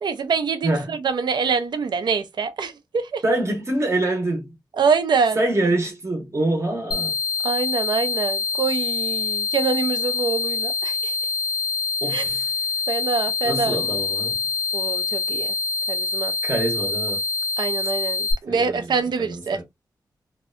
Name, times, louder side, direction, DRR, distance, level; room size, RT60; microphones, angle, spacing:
voice 1, 0.0-3.2 4.8-5.4 7.4-11.1 12.1-12.2 12.9-13.8 14.7-15.5 15.9-16.3 17.6-19.6, right 5 dB, 75° right, 0.4 m, -25 dB
voice 2, 0.6-0.9 3.2-4.5 5.4-7.1 12.0-12.5 13.4-14.5 16.4-17.2 18.5-19.6, right 2 dB, 40° right, 0.8 m, -25 dB
sound 1, 6.9-18.3, left 4 dB, 60° left, 0.4 m, -25 dB
2.6 x 2.1 x 2.4 m
wide cardioid pair, 115°, 8 cm